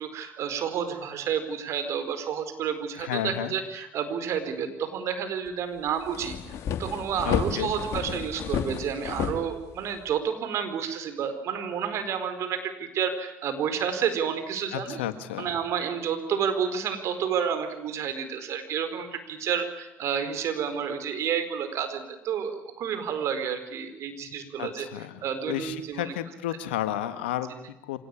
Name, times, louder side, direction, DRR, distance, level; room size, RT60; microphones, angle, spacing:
voice 1, 0.0-15.0 15.4-24.9 25.2-26.1, right 7 dB, 60° right, 9 dB, 4.6 m, -30 dB
voice 2, 3.0-3.5 7.2-7.7 14.7-15.5 24.6-28.0, left 12 dB, 85° left, 11 dB, 1.8 m, -32 dB
sound 1, 5.5-5.6 5.9-10.1, left 7 dB, 60° left, 2.7 m, -32 dB
25.5 x 18.5 x 9.9 m, 0.91 s
hypercardioid pair, 60°, 6 cm